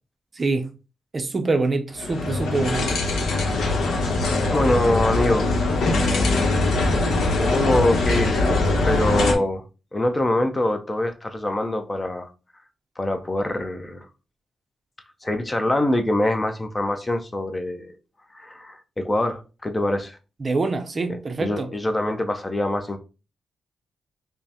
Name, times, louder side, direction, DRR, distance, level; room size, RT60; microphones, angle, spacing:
voice 1, 0.4-0.7 1.1-3.0 20.4-21.7, right 3 dB, 35° right, 0.5 m, -25 dB
sound 1, 2.0-9.4, left 2 dB, 80° left, 0.8 m, -22 dB
voice 2, 4.5-5.5 5.8-6.6 7.4-8.6 8.9-9.6 9.9-12.3 13.0-14.1 15.2-17.9 18.3-20.2 21.1-23.0, left 1 dB, 20° left, 0.5 m, -24 dB
5.2 x 2.1 x 2.8 m
wide cardioid pair, 125°, 0 cm